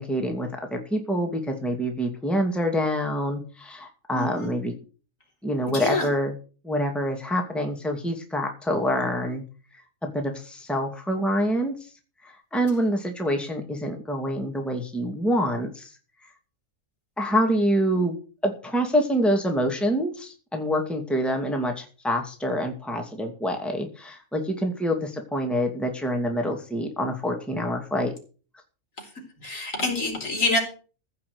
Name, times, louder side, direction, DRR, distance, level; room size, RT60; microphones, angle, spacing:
voice 1, 0.0-4.7 5.4-6.3 6.6-9.4 10.0-11.7 12.2-15.9 17.2-18.2 18.4-28.1, equal, ahead, 3 dB, 2.4 m, -26 dB
voice 2, 4.1-4.5 5.7-6.1 29.0-29.1 29.4-30.6, left 2 dB, 65° left, 2 dB, 4.6 m, -26 dB
15.5 x 5.9 x 8.1 m, 0.37 s
omnidirectional pair, 1.5 m